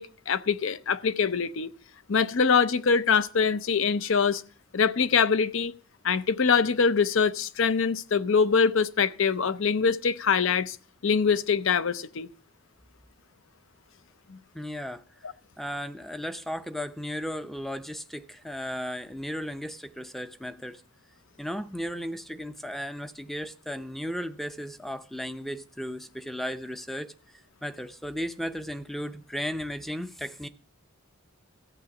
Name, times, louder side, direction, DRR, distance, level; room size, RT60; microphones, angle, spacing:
voice 1, 0.0-1.7 2.1-4.4 4.7-5.7 6.0-10.8 11.0-12.3 14.3-14.4, left 5 dB, 60° left, 0.6 m, -24 dB
voice 2, 14.5-15.0 15.6-20.8 21.4-27.1 27.6-30.5, equal, ahead, 0.5 m, -35 dB
14.0 x 8.6 x 5.8 m
head